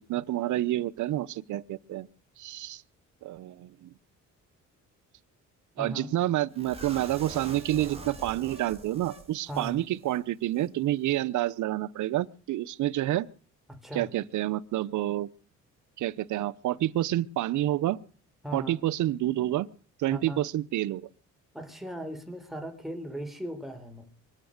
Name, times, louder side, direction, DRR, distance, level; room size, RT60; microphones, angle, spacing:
voice 1, 0.0-2.1 2.4-2.8 3.2-3.9 5.8-13.3 13.9-15.3 16.0-18.0 18.5-19.7 20.0-21.1, right 14 dB, 75° right, 0.8 m, -29 dB
voice 2, 5.8-6.1 9.5-9.8 13.7-14.1 18.4-18.8 20.1-20.4 21.5-24.1, right 1 dB, ahead, 3.8 m, -38 dB
sound 1, 6.6-9.8 10.0-10.2 10.5-10.7, right 3 dB, 20° right, 3.6 m, -44 dB
24.0 x 8.2 x 6.5 m
cardioid pair, 90°, 30 cm